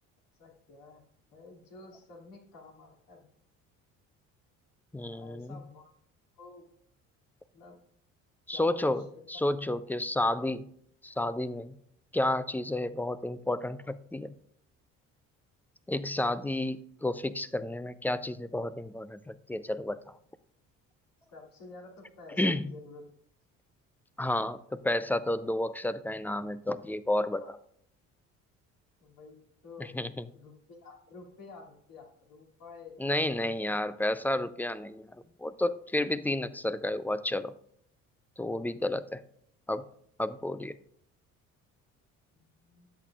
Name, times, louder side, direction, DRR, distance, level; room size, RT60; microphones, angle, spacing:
voice 1, 0.4-1.0 1.3-3.3 5.1-5.9 6.4-6.6 7.5-7.8 8.5-9.2 21.3-23.0 27.4-27.5 29.0-29.4 29.6-29.9 30.3-32.9 42.3-42.9, left 3 dB, 60° left, -1 dB, 2.7 m, -50 dB
voice 2, 4.9-5.6 8.5-10.7 11.0-11.8 12.1-14.3 15.9-20.2 22.4-22.6 24.2-27.6 29.9-30.2 33.0-35.1 35.4-37.5 38.4-39.2 39.7-39.9 40.2-40.8, left 1 dB, 5° left, 15 dB, 0.3 m, -31 dB
10.5 x 8.0 x 2.4 m, 0.67 s
hypercardioid pair, 55°, 39 cm